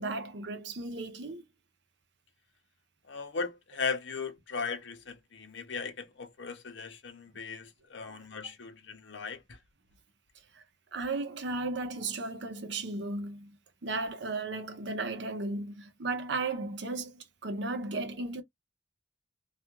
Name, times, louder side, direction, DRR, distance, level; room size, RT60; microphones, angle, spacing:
voice 1, 0.0-1.4 8.1-8.2 8.4-8.5 10.5-10.6 10.9-18.4, right 3 dB, 70° right, 0.6 m, -35 dB
voice 2, 3.1-9.4, left 5 dB, 75° left, 0.6 m, -37 dB
2.4 x 2.3 x 2.8 m
head